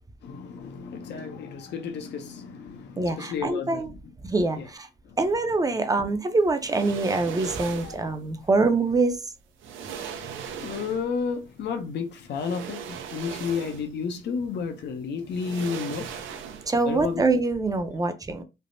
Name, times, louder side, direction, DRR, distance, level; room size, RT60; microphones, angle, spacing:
voice 1, 0.2-3.8 4.6-4.7 5.1-5.2 7.8-7.9 9.8-16.1 16.9-17.2, left 6 dB, 60° left, 0.6 m, -32 dB
voice 2, 3.0-3.9 4.2-4.9 5.2-9.3 16.7-18.4, right 3 dB, 20° right, 0.5 m, -24 dB
sound 1, 6.6-8.1 9.1-9.2 9.6-11.2 12.3-14.0 14.4-14.5 15.3-16.9 17.2-17.3, right 7 dB, 75° right, 0.5 m, -38 dB
3.3 x 2.0 x 2.6 m
cardioid pair, 90°, 20 cm